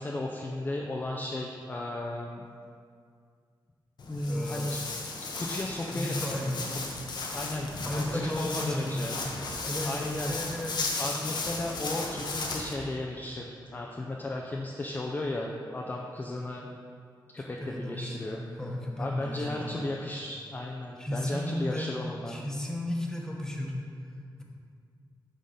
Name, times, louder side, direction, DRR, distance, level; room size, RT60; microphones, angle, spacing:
voice 1, 0.0-2.5 4.1-4.8 5.3-6.5 7.3-9.2 9.6-10.3 11.0-16.7 17.3-18.4 19.0-22.4, left 1 dB, 20° left, -1 dB, 0.5 m, -35 dB
Walk footsteps, 4.0-12.7, left 3 dB, 60° left, 1.0 m, -35 dB
voice 2, 4.2-4.6 5.9-6.6 7.8-8.9 9.6-10.8 17.4-19.8 21.0-21.9 22.2-23.8, left 1 dB, 5° left, -1 dB, 1.1 m, -34 dB
9.4 x 3.9 x 6.5 m, 2.2 s
wide cardioid pair, 150°, 8 cm